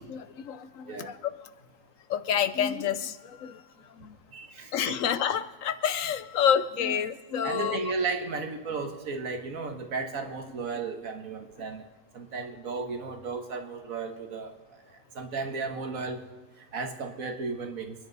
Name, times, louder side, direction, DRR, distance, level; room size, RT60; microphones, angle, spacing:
voice 1, 0.1-1.3 2.1-3.6 4.0-4.2 4.7-7.9, left 8 dB, 65° left, 13 dB, 1.1 m, -28 dB
voice 2, 4.3-5.0 7.4-11.8 12.1-14.5 15.2-16.2 16.7-18.0, right 4 dB, 65° right, 6 dB, 1.8 m, -34 dB
27.5 x 10.5 x 4.0 m, 1.3 s
omnidirectional pair, 1.6 m